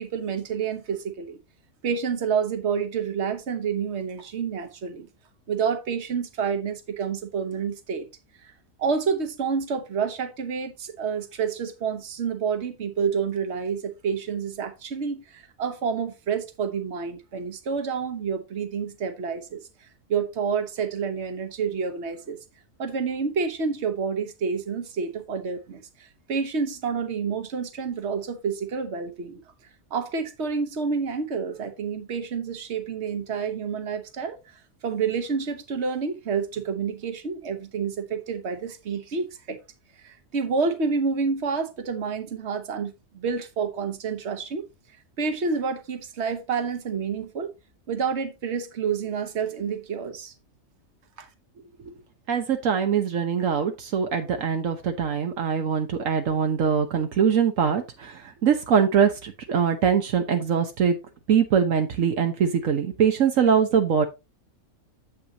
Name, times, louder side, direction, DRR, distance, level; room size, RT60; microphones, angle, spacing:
voice 1, 0.0-1.4 1.8-5.1 5.5-8.1 8.8-19.6 20.1-22.4 22.8-25.8 26.3-29.4 29.9-34.4 34.8-39.6 40.0-44.7 45.2-47.5 47.9-50.3 51.2-51.3, right 6 dB, 60° right, 1.4 m, -28 dB
voice 2, 52.3-61.0 61.3-64.1, right 7 dB, 75° right, 1.3 m, -23 dB
8.4 x 7.8 x 2.8 m
omnidirectional pair, 1.4 m